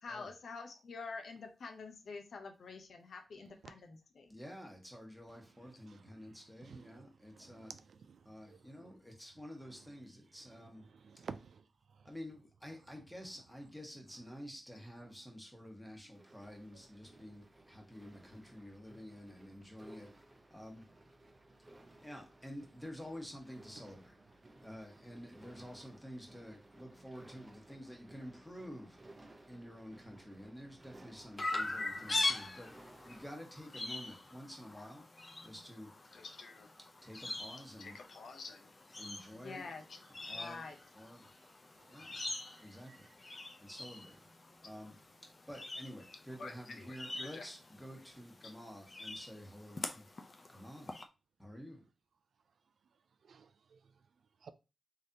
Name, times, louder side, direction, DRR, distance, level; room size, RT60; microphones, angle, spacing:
voice 1, 0.0-4.3 36.1-36.7 37.8-38.7 39.3-39.8 40.3-40.8 46.4-47.5, left 4 dB, 75° left, 0.7 m, -47 dB
voice 2, 4.3-7.7 8.2-10.9 12.0-20.1 20.5-20.8 22.0-24.1 24.6-29.0 29.5-35.0 35.4-35.9 37.0-38.0 39.0-39.7 40.3-40.7 40.9-41.3 41.9-42.2 42.6-43.1 43.6-44.2 44.6-45.0 45.5-50.1 50.5-50.9 51.4-51.8, equal, 5° left, 1.2 m, -50 dB
voice 3, 6.7-7.0 7.4-7.8 11.0-11.6 53.3-53.8 54.4-54.5, right 5 dB, 75° right, 0.4 m, -49 dB
sound 1, 16.1-33.3, right 1 dB, 25° right, 0.6 m, -59 dB
Chirp tweet, 31.4-51.0, left 2 dB, 35° left, 0.5 m, -43 dB
3.8 x 3.2 x 2.7 m
wide cardioid pair, 95°, 0 cm